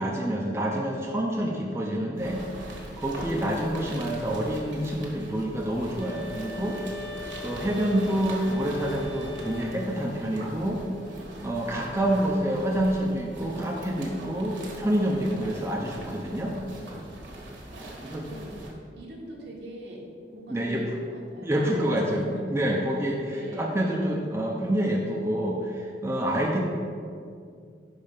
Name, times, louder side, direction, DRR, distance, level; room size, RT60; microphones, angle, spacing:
voice 1, 0.0-2.4 3.0-6.8 7.4-10.8 11.4-16.6 18.0-18.3 20.5-20.8 21.4-26.6, right 1 dB, 15° right, -2 dB, 0.5 m, -27 dB
sound 1, 2.1-18.7, right 1 dB, 85° right, 1.4 m, -42 dB
sound 2, 6.0-10.1, left 3 dB, 25° left, 1.1 m, -42 dB
voice 2, 17.7-18.6 18.9-20.0 20.3-22.6 23.3-23.7, right 1 dB, 65° right, -2 dB, 1.3 m, -41 dB
5.3 x 5.2 x 5.4 m, 2.3 s
head